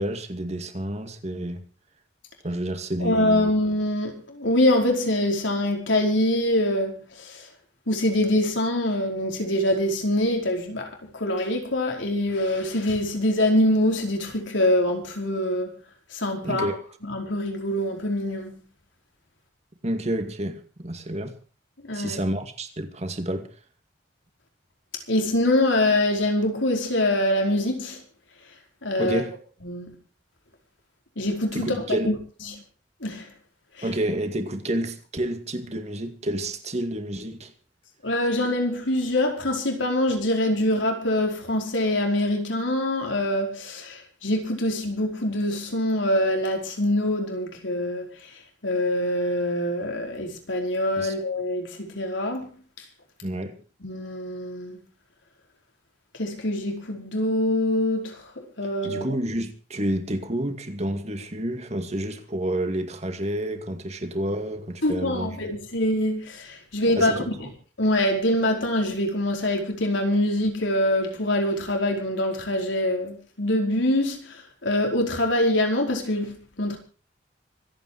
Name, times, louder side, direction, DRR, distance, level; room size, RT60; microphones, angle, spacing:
voice 1, 0.0-1.6 2.4-3.5 16.4-16.8 19.8-21.3 21.9-23.5 29.0-29.3 31.5-32.1 33.8-37.5 51.0-51.1 53.2-53.6 58.8-65.5 67.0-67.3, right 1 dB, 35° right, 2.3 m, -29 dB
voice 2, 3.0-7.5 7.9-15.8 16.1-16.7 17.0-18.6 21.8-22.2 25.1-28.0 28.8-29.2 29.6-30.0 31.2-31.8 32.1-32.2 33.0-33.3 33.8-33.9 38.0-48.3 48.6-52.5 53.8-54.8 56.2-59.1 64.8-67.1 67.8-76.8, left 1 dB, 90° left, 4.9 m, -24 dB
25.5 x 9.2 x 4.8 m
head